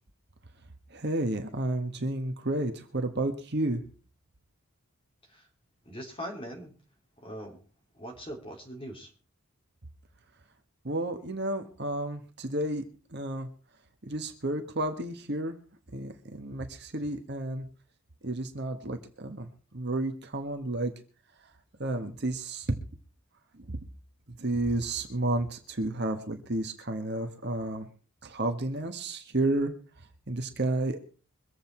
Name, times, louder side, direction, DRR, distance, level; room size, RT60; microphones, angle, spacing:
voice 1, 0.9-3.8 10.8-12.8 13.1-13.5 14.0-15.6 15.9-17.7 18.2-20.9 21.8-22.7 23.6-23.8 24.3-27.9 28.2-29.7 30.3-31.0, right 2 dB, 50° right, 6 dB, 1.5 m, -31 dB
voice 2, 5.8-6.7 7.2-7.6 8.0-9.1, equal, 25° left, 1 dB, 3.0 m, -41 dB
24.0 x 8.0 x 4.5 m, 0.38 s
head